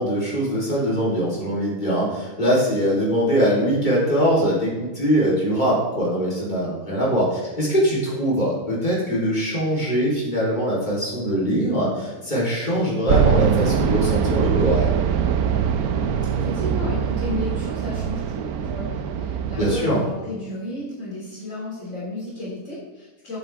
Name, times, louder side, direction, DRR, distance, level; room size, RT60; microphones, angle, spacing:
voice 1, 0.0-15.0 19.5-20.0, equal, 30° left, -6 dB, 4.1 m, -22 dB
sound 1, 13.1-19.9, right 7 dB, 85° right, 1.2 m, -22 dB
voice 2, 16.3-23.4, left 1 dB, 60° left, -6 dB, 3.3 m, -33 dB
13.5 x 8.1 x 3.6 m, 1.3 s
omnidirectional pair, 1.5 m